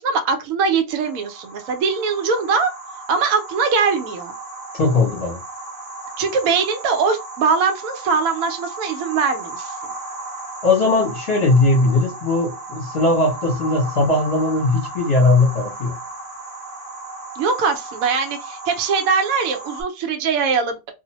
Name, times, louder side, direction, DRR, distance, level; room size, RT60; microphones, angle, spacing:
voice 1, 0.0-2.7 3.1-4.3 6.2-9.9 17.3-20.9, right 5 dB, 75° right, 1.0 m, -21 dB
sound 1, 0.9-19.8, right 2 dB, 45° right, 0.9 m, -35 dB
voice 2, 4.7-5.4 10.6-16.0, left 2 dB, 50° left, 1.0 m, -18 dB
2.6 x 2.1 x 2.8 m
omnidirectional pair, 1.5 m